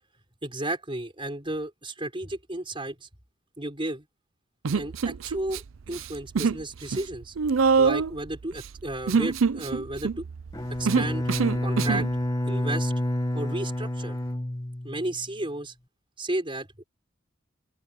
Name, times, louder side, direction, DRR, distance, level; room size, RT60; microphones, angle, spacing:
voice 1, 0.4-3.1 3.6-4.1 4.7-7.3 7.8-10.3 10.8-11.3 11.6-12.1 12.5-12.9 13.3-14.2 14.8-15.7 16.2-16.8, right 1 dB, 25° right, 4.3 m, -33 dB
Human voice, 4.6-5.6 5.9-6.6 6.9-12.1, right 5 dB, 85° right, 0.5 m, -25 dB
Bowed string instrument, 10.5-15.3, left 1 dB, 20° left, 1.5 m, -29 dB
open air
head